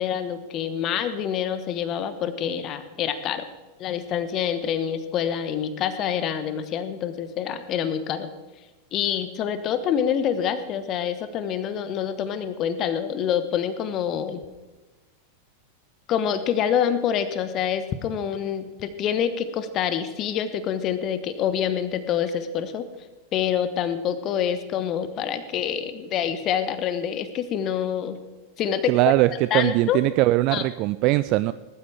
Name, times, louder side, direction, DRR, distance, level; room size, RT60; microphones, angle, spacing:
voice 1, 0.0-3.5 3.8-8.3 8.9-14.4 16.1-22.8 23.3-28.2 28.6-29.0 29.3-30.0 30.5-30.6, left 8 dB, 35° left, 12 dB, 1.1 m, -26 dB
voice 2, 28.9-31.5, right 18 dB, 40° right, 15 dB, 0.3 m, -21 dB
20.0 x 12.5 x 3.4 m, 1.2 s
figure-of-eight pair, 90°, 0 cm